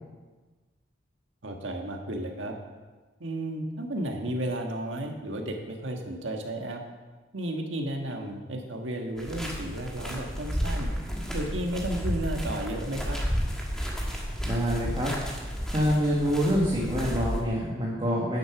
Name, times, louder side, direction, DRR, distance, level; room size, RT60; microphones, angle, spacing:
voice 1, 1.4-2.5 3.2-6.8 7.3-10.9 11.3-13.2, right 1 dB, 85° right, 2 dB, 1.6 m, -33 dB
sound 1, 9.2-17.4, equal, 5° left, 1.6 m, -32 dB
voice 2, 14.4-15.1 15.7-18.4, equal, 25° right, -4 dB, 1.6 m, -26 dB
10.5 x 7.8 x 6.0 m, 1.3 s
head